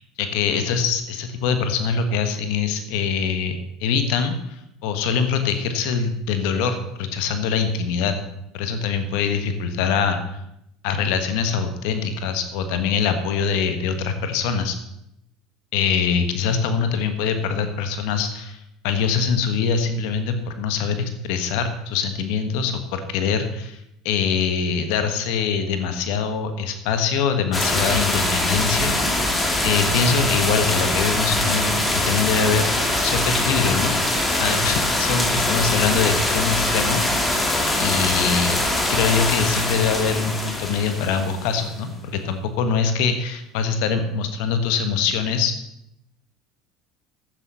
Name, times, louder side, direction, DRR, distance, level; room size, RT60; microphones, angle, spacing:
voice 1, 0.2-8.2 8.5-10.2 10.8-14.8 15.7-23.8 24.0-28.9 29.6-33.9 34.4-37.4 37.8-38.6 38.9-45.5, left 6 dB, 75° left, 8 dB, 1.4 m, -23 dB
sound 1, 27.5-41.8, left 1 dB, 15° left, 2.3 m, -23 dB
10.5 x 8.6 x 5.6 m, 0.81 s
supercardioid pair, 90°, 0 cm